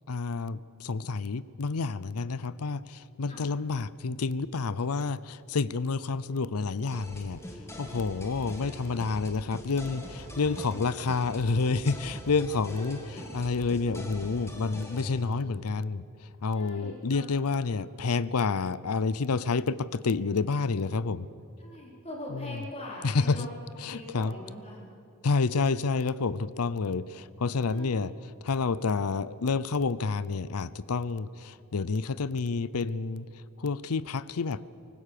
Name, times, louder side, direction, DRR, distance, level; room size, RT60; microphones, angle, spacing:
voice 1, 0.1-7.4 7.8-21.3 22.3-22.6 23.0-23.5 23.8-24.3 25.2-34.6, left 4 dB, 80° left, 18 dB, 0.6 m, -29 dB
sound 1, 6.9-15.2, equal, 15° left, 2.3 m, -43 dB
voice 2, 10.3-10.9 12.7-13.4 16.5-17.2 21.6-24.8 27.7-28.0, left 1 dB, 30° left, -2 dB, 4.6 m, -43 dB
24.0 x 19.5 x 6.8 m, 2.6 s
head